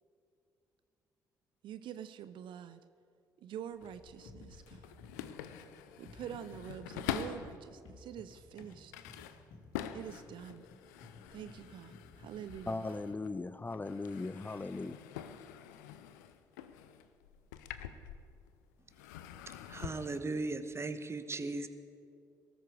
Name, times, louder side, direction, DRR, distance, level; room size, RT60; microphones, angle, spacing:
voice 1, 1.6-2.8 3.4-4.9 6.0-8.9 9.9-10.7 11.3-12.9, right 9 dB, 60° right, 13 dB, 0.5 m, -46 dB
sound 1, 3.6-7.6 8.2-13.4 13.7-18.5 18.9-20.2, left 10 dB, 80° left, 0.6 m, -46 dB
sound 2, 3.8-13.4, left 2 dB, 65° left, 2.1 m, -56 dB
voice 2, 12.7-15.0, left 3 dB, 20° left, 15 dB, 0.5 m, -38 dB
voice 3, 19.7-21.7, right 3 dB, 30° right, 10 dB, 1.1 m, -37 dB
18.5 x 13.5 x 4.9 m, 2.4 s
hypercardioid pair, 45°, 9 cm